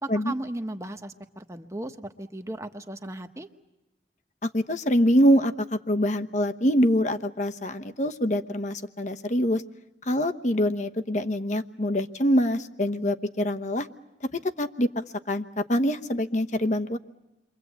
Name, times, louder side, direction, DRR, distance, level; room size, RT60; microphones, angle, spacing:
voice 1, 0.0-3.5, right 1 dB, 15° right, 7 dB, 1.2 m, -36 dB
voice 2, 4.4-9.6 10.0-13.9 14.6-17.0, equal, 40° left, 8 dB, 1.1 m, -25 dB
29.5 x 24.0 x 8.2 m, 1.0 s
head